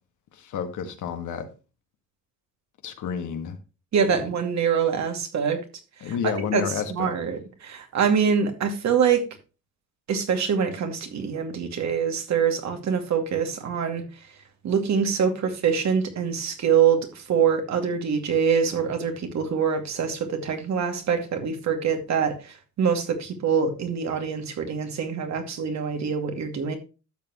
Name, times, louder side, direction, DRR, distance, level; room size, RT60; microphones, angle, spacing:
voice 1, 0.3-1.5 2.8-3.6 4.1-4.2 6.0-7.1, left 7 dB, 75° left, 1.8 m, -30 dB
voice 2, 3.9-5.6 6.0-9.2 10.1-14.0 14.6-26.8, right 7 dB, 65° right, 2.4 m, -24 dB
12.0 x 7.1 x 3.0 m
cardioid pair, 90°, 30 cm